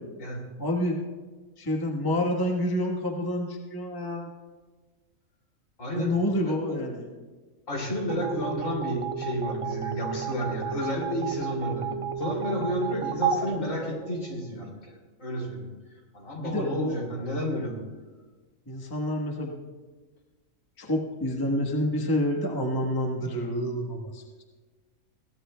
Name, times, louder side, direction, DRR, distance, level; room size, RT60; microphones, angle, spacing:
voice 1, 0.6-1.0 1.6-4.3 5.9-7.1 16.4-17.0 18.7-19.5 20.8-24.2, left 1 dB, 15° left, 0 dB, 1.2 m, -28 dB
voice 2, 5.8-6.1 6.4-6.8 7.7-15.7 16.1-17.8, left 1 dB, 65° left, -1 dB, 3.2 m, -31 dB
sound 1, 8.1-14.6, right 7 dB, 40° right, 0.4 m, -32 dB
22.0 x 16.5 x 2.2 m, 1.3 s
omnidirectional pair, 1.5 m